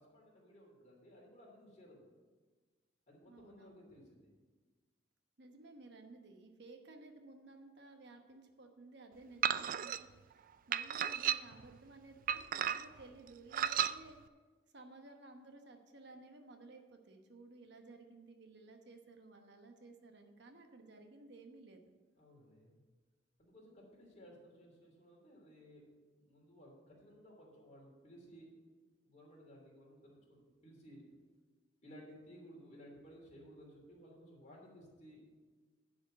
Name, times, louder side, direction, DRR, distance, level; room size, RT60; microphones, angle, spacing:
voice 1, 0.0-2.1 3.1-4.3 22.2-22.8 23.4-25.8 26.2-28.5 29.0-31.0 31.8-35.2, equal, 40° left, -3 dB, 3.1 m, -58 dB
voice 2, 3.2-3.8 5.4-14.2 14.7-21.9, right 2 dB, 65° right, 5 dB, 1.1 m, -56 dB
sound 1, 9.4-10.0 10.7-11.7 12.3-13.0 13.5-13.9, right 9 dB, 50° right, 0.3 m, -34 dB
10.5 x 5.0 x 7.6 m, 1.4 s
head